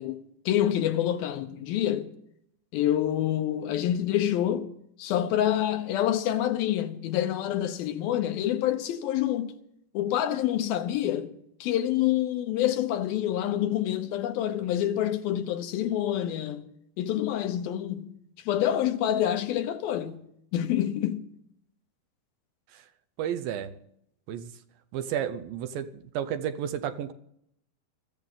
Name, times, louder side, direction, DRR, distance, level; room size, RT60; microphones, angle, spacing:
voice 1, 0.0-2.1 2.7-4.7 5.0-9.5 9.9-11.3 11.6-16.7 17.0-20.2 20.5-21.3, left 11 dB, 80° left, 2.8 m, -27 dB
voice 2, 23.2-23.8 24.3-24.5 24.9-25.9 26.1-27.1, right 9 dB, 75° right, 2.6 m, -32 dB
23.0 x 14.5 x 3.7 m
omnidirectional pair, 4.3 m